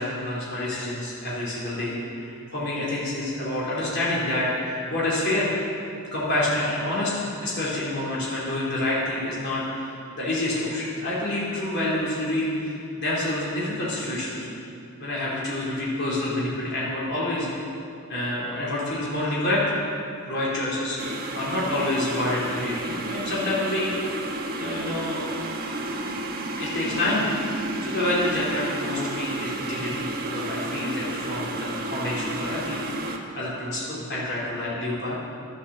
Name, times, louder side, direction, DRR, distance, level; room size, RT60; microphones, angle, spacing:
voice 1, 0.0-5.5 6.1-14.5 15.0-17.5 18.1-19.8 20.2-24.0 24.6-25.3 26.6-27.2 27.6-35.2, left 1 dB, 50° left, -7 dB, 3.8 m, -28 dB
sound 1, 21.0-33.2, right 2 dB, 40° right, 1.3 m, -31 dB
13.0 x 11.5 x 7.2 m, 2.7 s
head